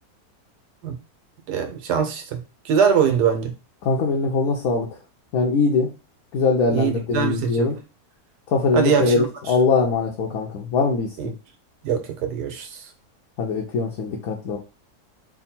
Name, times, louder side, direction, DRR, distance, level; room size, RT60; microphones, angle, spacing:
voice 1, 1.5-3.5 6.7-7.7 8.7-9.3 11.2-11.3 11.8-12.9, right 7 dB, 85° right, 1.4 m, -22 dB
voice 2, 3.8-4.9 5.3-5.9 6.3-7.8 8.5-11.3 13.4-14.6, left 4 dB, 70° left, 1.1 m, -22 dB
3.5 x 2.2 x 4.2 m
omnidirectional pair, 1.7 m